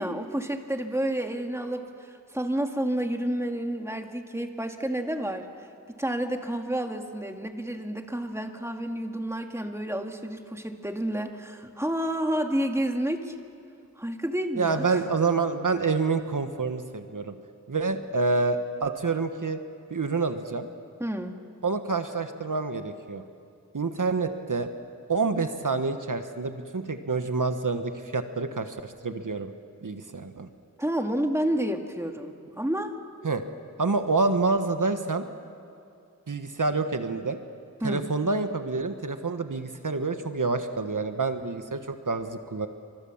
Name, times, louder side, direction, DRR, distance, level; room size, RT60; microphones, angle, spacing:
voice 1, 0.0-5.5 6.0-13.3 14.0-15.0 21.0-21.4 30.8-32.9 37.8-38.1, right 1 dB, 10° right, 4 dB, 2.1 m, -30 dB
voice 2, 14.6-17.3 17.7-19.6 19.9-20.7 21.6-23.2 23.7-24.7 25.1-29.5 29.8-30.5 33.2-33.4 33.8-35.2 36.3-37.4 37.8-42.7, right 4 dB, 70° right, 8 dB, 1.4 m, -27 dB
30.0 x 25.5 x 7.3 m, 2.5 s
wide cardioid pair, 65°, 33 cm